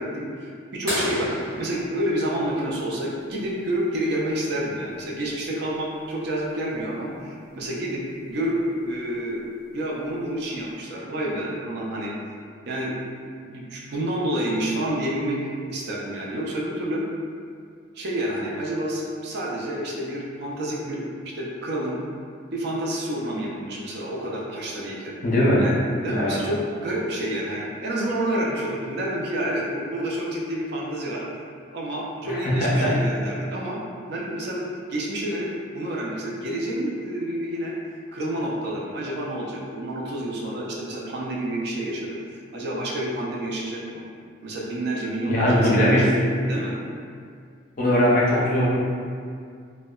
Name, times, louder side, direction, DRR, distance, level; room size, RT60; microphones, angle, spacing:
voice 1, 0.0-9.4 9.7-12.1 12.7-13.1 13.5-15.4 15.7-17.1 17.9-21.0 21.3-22.0 22.5-25.1 25.6-31.2 31.7-33.8 34.1-34.6 34.9-37.7 38.1-44.0 44.4-46.1 46.5-46.7, right 1 dB, 55° right, -3 dB, 0.4 m, -29 dB
sound 1, 0.9-3.3 5.2-5.3 7.6-7.7 9.4-9.7 10.4-10.5, equal, 20° right, 1.1 m, -32 dB
voice 2, 25.2-25.6 26.1-26.4 32.3-32.9 45.3-46.1 47.8-48.7, equal, 45° left, -6 dB, 0.5 m, -20 dB
2.7 x 2.1 x 2.3 m, 2.2 s
head